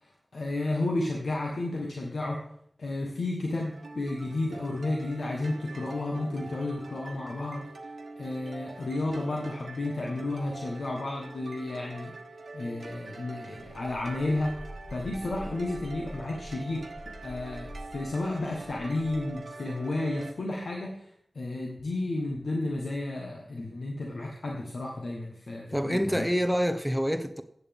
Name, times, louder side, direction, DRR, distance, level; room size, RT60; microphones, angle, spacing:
voice 1, 0.0-2.4 2.8-7.7 8.2-12.1 12.5-14.6 14.9-26.3, left 2 dB, 85° left, 1.3 m, -32 dB
sound 1, 3.6-20.3, right 3 dB, 90° right, 1.1 m, -45 dB
sound 2, 13.6-19.3, equal, 55° left, 4.5 m, -46 dB
voice 2, 25.7-27.4, equal, ahead, 0.6 m, -27 dB
14.0 x 8.4 x 3.6 m
wide cardioid pair, 70°, 0 cm